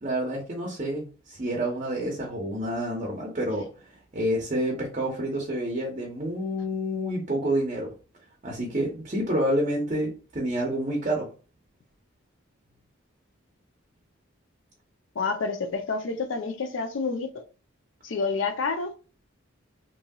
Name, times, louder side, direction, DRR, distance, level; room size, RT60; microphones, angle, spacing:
voice 1, 0.0-3.7 4.1-7.9 8.4-11.3, right 1 dB, 35° right, 0.7 m, -28 dB
voice 2, 15.2-17.3 18.0-18.9, left 4 dB, 70° left, 0.5 m, -28 dB
2.9 x 2.6 x 2.3 m
head